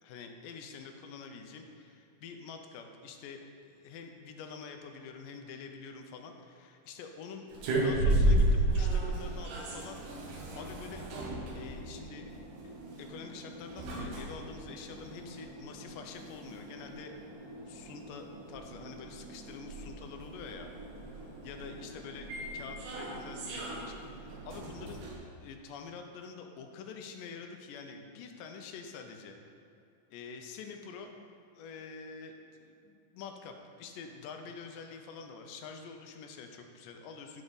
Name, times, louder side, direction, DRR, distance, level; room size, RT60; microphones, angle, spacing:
voice 1, 0.0-11.1 11.5-12.3 12.6-17.1 17.6-20.7 21.2-22.3 22.5-25.0 25.4-29.4 30.1-31.1 31.6-32.4 32.6-37.4, left 5 dB, 85° left, 4 dB, 2.3 m, -46 dB
sound 1, 7.5-25.2, right 1 dB, 75° right, 2.6 m, -34 dB
12.0 x 4.9 x 4.0 m, 2.6 s
omnidirectional pair, 3.8 m